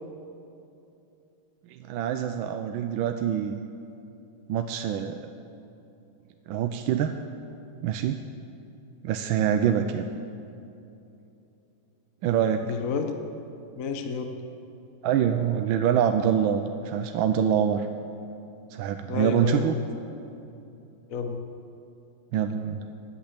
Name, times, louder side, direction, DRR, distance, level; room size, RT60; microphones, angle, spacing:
voice 1, 1.8-3.7 4.5-5.2 6.5-7.1 7.8-8.3 9.0-10.0 12.2-12.6 15.0-17.9 18.7-19.7 22.3-22.8, right 9 dB, 80° right, 7 dB, 1.5 m, -25 dB
voice 2, 12.6-13.1 13.8-14.4 19.1-19.8 21.1-21.4, left 5 dB, 50° left, 5 dB, 1.2 m, -30 dB
13.5 x 10.0 x 8.7 m, 2.8 s
omnidirectional pair, 2.2 m